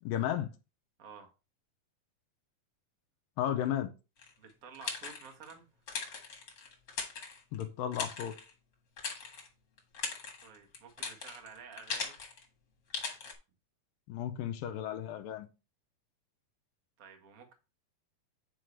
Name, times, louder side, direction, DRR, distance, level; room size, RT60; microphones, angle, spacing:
voice 1, 0.0-0.5 3.4-3.9 7.5-8.3 14.1-15.5, left 10 dB, 80° left, 2.3 m, -34 dB
sound 1, 4.2-5.5 5.9-7.6 7.9-8.5 9.0-9.5 9.8-12.4 12.9-13.3, left 5 dB, 45° left, 1.7 m, -40 dB
voice 2, 4.4-5.7 10.4-12.2 17.0-17.5, right 6 dB, 65° right, 0.8 m, -51 dB
9.1 x 4.8 x 3.3 m
omnidirectional pair, 4.1 m